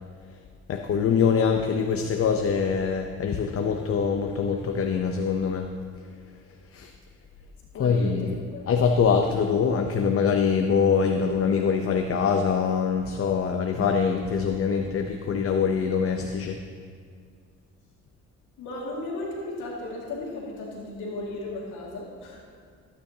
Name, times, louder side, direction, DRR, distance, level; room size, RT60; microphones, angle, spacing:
voice 1, 0.7-5.7 6.7-6.9 7.7-8.4 8.7-16.6, left 6 dB, 50° left, 4 dB, 0.7 m, -24 dB
voice 2, 7.7-8.7 18.6-22.5, left 2 dB, 85° left, -4 dB, 2.0 m, -35 dB
15.0 x 9.2 x 2.8 m, 2.1 s
cardioid pair, 90°, 30 cm